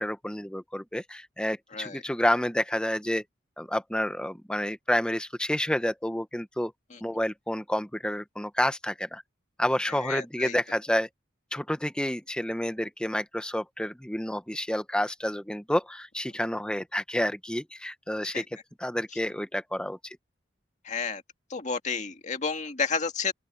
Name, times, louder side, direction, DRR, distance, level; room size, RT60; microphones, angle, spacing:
voice 1, 0.0-3.2 3.6-6.7 7.0-9.2 9.6-11.1 11.5-18.4 18.8-20.2, left 1 dB, 5° left, 1.0 m, -29 dB
voice 2, 10.0-10.5 18.3-18.4 20.9-21.2 21.5-23.3, left 5 dB, 40° left, 2.1 m, -31 dB
open air
head